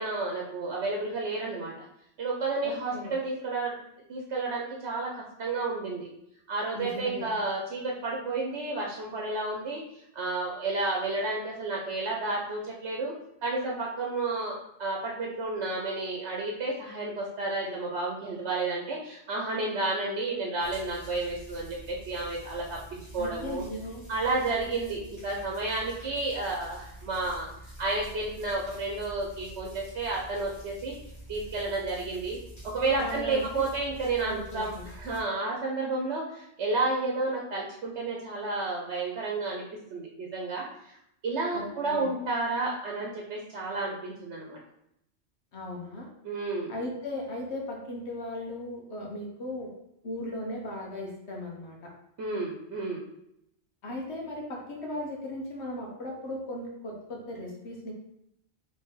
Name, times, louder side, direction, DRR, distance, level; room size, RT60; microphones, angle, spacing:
voice 1, 0.0-1.7 2.2-3.8 4.1-6.1 6.5-13.1 13.4-23.6 24.1-27.5 27.8-30.9 31.3-32.4 32.6-39.6 39.9-41.0 41.2-44.6 46.2-46.8 52.2-53.0, right 3 dB, 80° right, -1 dB, 1.0 m, -31 dB
voice 2, 2.6-3.1 6.7-7.4 23.2-24.0 33.0-33.7 34.2-34.8 41.5-42.1 45.5-46.1 46.7-49.7 50.0-51.9 53.8-57.9, left 1 dB, 75° left, -1 dB, 1.3 m, -37 dB
sound 1, 20.6-35.2, right 1 dB, 15° left, 1.2 m, -47 dB
4.2 x 3.3 x 3.7 m, 0.79 s
omnidirectional pair, 1.1 m